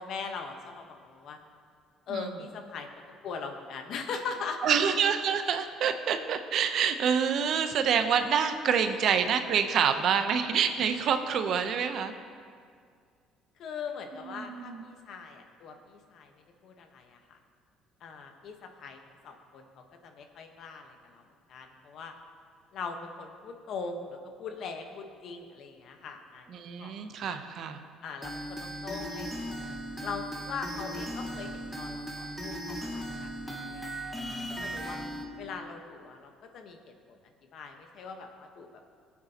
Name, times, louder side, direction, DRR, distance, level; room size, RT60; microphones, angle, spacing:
voice 1, 0.0-1.4 2.1-2.9 3.2-4.8 8.8-9.0 13.6-16.3 16.6-17.4 18.0-19.0 19.2-21.2 21.5-22.1 22.7-26.5 26.8-26.9 27.2-27.4 28.0-29.5 30.0-34.1 34.6-35.0 35.4-37.2 37.5-38.9, left 5 dB, 65° left, 4 dB, 1.2 m, -41 dB
voice 2, 4.6-12.1 14.4-14.8 26.5-27.8, right 7 dB, 60° right, 8 dB, 0.8 m, -27 dB
sound 1, 28.2-35.2, equal, 5° right, 1.5 m, -37 dB
18.5 x 8.5 x 2.9 m, 2.1 s
supercardioid pair, 90°, 0 cm